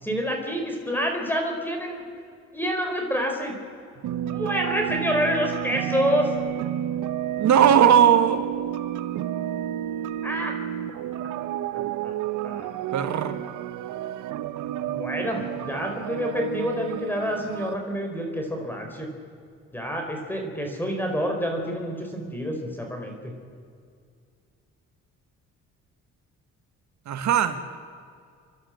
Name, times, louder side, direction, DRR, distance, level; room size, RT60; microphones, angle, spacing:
voice 1, 0.0-2.0 2.5-3.5 4.2-6.3 10.2-10.5 12.0-12.1 12.4-12.7 14.9-19.1 19.7-23.2, equal, 5° left, 2 dB, 4.6 m, -28 dB
sound 1, 4.0-17.8, right 11 dB, 85° right, 0.8 m, -31 dB
voice 2, 7.4-8.5 12.9-13.4 27.0-27.8, right 9 dB, 70° right, 9 dB, 1.6 m, -18 dB
30.0 x 12.0 x 7.9 m, 2.3 s
cardioid pair, 90°, 30 cm